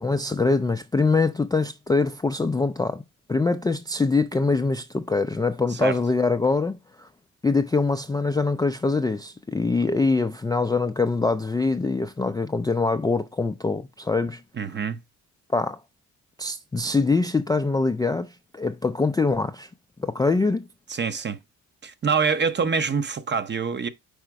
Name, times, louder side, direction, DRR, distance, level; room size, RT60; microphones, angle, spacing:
voice 1, 0.0-3.0 3.3-7.1 7.4-14.4 15.5-15.8 16.4-19.7 20.0-20.7, left 3 dB, 10° left, 0.3 m, -24 dB
voice 2, 14.5-15.0 20.9-21.4 21.8-23.9, right 5 dB, 30° right, 0.6 m, -25 dB
5.0 x 4.3 x 4.6 m
cardioid pair, 90°, 38 cm